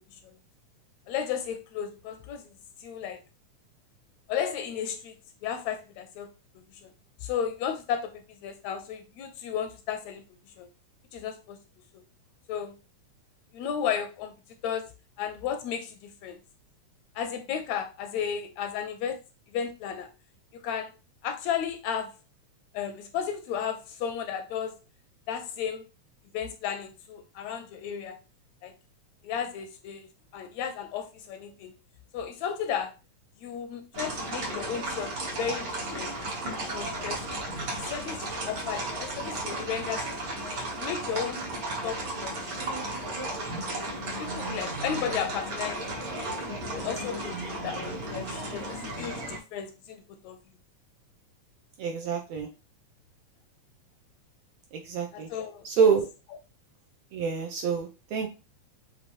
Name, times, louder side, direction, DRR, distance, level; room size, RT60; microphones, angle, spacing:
voice 1, 1.1-2.4 2.8-3.2 4.3-5.1 5.4-6.3 6.5-6.9 7.2-10.2 10.6-10.7 11.1-11.6 11.9-12.0 12.5-12.8 13.5-14.3 14.6-14.8 15.2-16.4 17.1-19.2 19.5-20.1 20.6-20.9 21.2-22.1 22.7-24.7 25.3-25.8 26.3-28.2 28.6-28.7 29.2-30.1 30.3-31.7 32.1-32.9 33.4-36.1 36.7-37.4 37.7-40.1 40.8-41.4 41.8-42.3 43.0-43.2 44.2-45.9 46.3-46.5 46.7-50.4 55.1-55.6, left 8 dB, 80° left, 7 dB, 1.7 m, -34 dB
sound 1, 33.9-49.4, right 2 dB, 50° right, 1.0 m, -34 dB
voice 2, 51.8-52.5 54.7-55.3 55.6-56.1 57.1-58.3, right 6 dB, 80° right, 4 dB, 1.6 m, -26 dB
5.9 x 2.7 x 3.0 m, 0.29 s
omnidirectional pair, 3.4 m